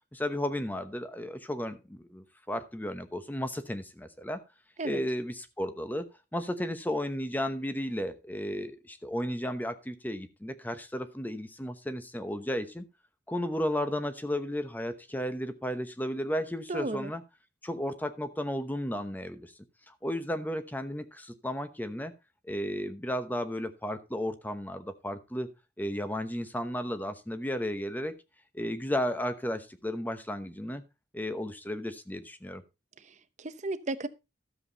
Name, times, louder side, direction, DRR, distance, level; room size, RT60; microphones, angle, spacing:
voice 1, 0.1-4.4 4.8-6.1 6.3-12.9 13.3-17.2 17.6-19.5 19.9-22.1 22.5-25.5 25.8-28.1 28.5-30.8 31.1-32.6, equal, 10° left, 0.9 m, -34 dB
voice 2, 16.7-17.1 33.1-34.1, right 2 dB, 40° right, 0.8 m, -34 dB
13.0 x 7.5 x 4.0 m
head